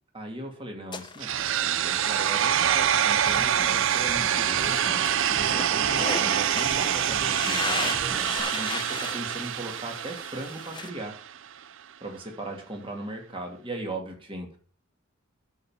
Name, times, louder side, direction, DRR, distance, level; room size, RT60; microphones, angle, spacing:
voice 1, 0.1-11.2 12.0-14.6, right 1 dB, 25° right, 1 dB, 2.7 m, -38 dB
sound 1, 0.9-10.9, left 4 dB, 20° left, 0.8 m, -37 dB
sound 2, 1.2-11.2, right 10 dB, 60° right, 0.5 m, -26 dB
sound 3, 3.3-8.4, equal, ahead, 1.0 m, -40 dB
12.5 x 5.5 x 5.7 m, 0.44 s
head